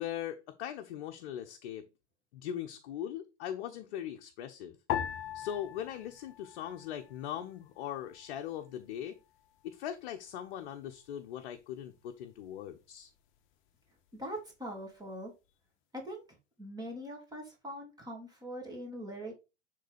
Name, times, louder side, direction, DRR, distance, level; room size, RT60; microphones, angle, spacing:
voice 1, 0.0-1.9 2.3-4.8 5.3-9.2 9.6-13.1, left 10 dB, 55° left, 1.1 m, -40 dB
sound 1, 4.9-7.4 7.7-8.6 9.2-9.6, left 9 dB, 35° left, 1.2 m, -40 dB
voice 2, 14.1-15.3 16.0-16.2 16.6-19.3, right 1 dB, 10° right, 2.9 m, -42 dB
10.0 x 3.8 x 5.1 m
figure-of-eight pair, 90°, 34 cm